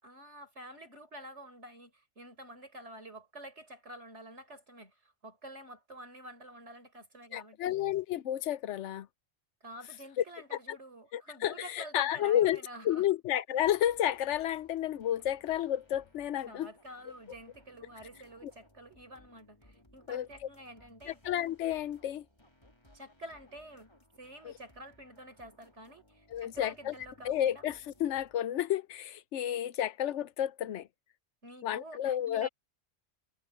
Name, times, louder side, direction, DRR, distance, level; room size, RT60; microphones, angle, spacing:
voice 1, 0.0-4.9 5.2-7.6 9.6-13.1 16.5-21.2 22.9-23.9 24.2-27.6 31.4-32.5, right 1 dB, 70° right, 5.6 m, -49 dB
voice 2, 7.3-9.1 10.2-10.3 10.5-10.8 11.1-16.7 18.4-18.5 20.1-20.3 21.1-22.2 24.4-24.5 26.3-26.9 27.2-30.9 31.6-32.5, left 11 dB, 80° left, 1.0 m, -31 dB
sound 1, 13.6-28.4, left 1 dB, 20° left, 3.2 m, -62 dB
omnidirectional pair, 1.2 m